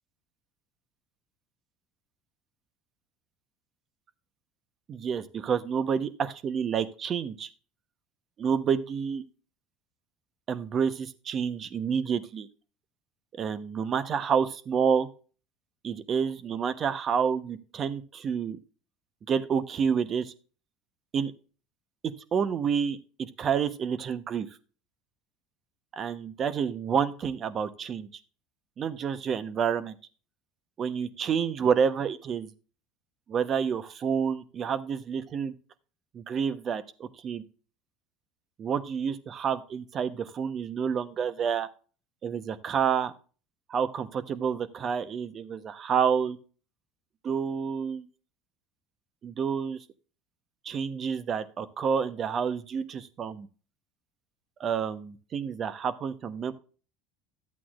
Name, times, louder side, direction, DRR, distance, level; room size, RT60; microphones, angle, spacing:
voice 1, 4.9-7.5 8.4-9.2 10.5-12.5 13.4-15.1 15.8-18.6 19.3-20.3 21.1-21.3 22.3-24.5 25.9-28.1 28.8-30.0 30.8-32.5 33.3-35.5 36.1-37.4 38.6-41.7 42.2-43.1 43.7-46.4 47.2-48.1 49.2-49.8 50.6-53.5 54.6-56.5, right 7 dB, 40° right, 13 dB, 0.9 m, -29 dB
12.5 x 8.4 x 2.4 m, 0.37 s
supercardioid pair, 90°, 0 cm